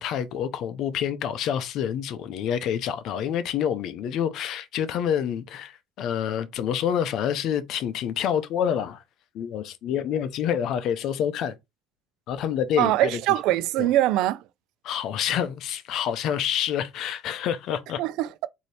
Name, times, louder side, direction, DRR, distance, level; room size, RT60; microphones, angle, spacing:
voice 1, 0.0-9.0 9.3-11.5 12.3-13.2 13.8-13.9 14.8-18.0, left 9 dB, 55° left, 0.6 m, -27 dB
voice 2, 12.8-14.4 18.0-18.5, right 14 dB, 70° right, 0.3 m, -23 dB
4.1 x 2.8 x 3.2 m
cardioid pair, 150°, 0 cm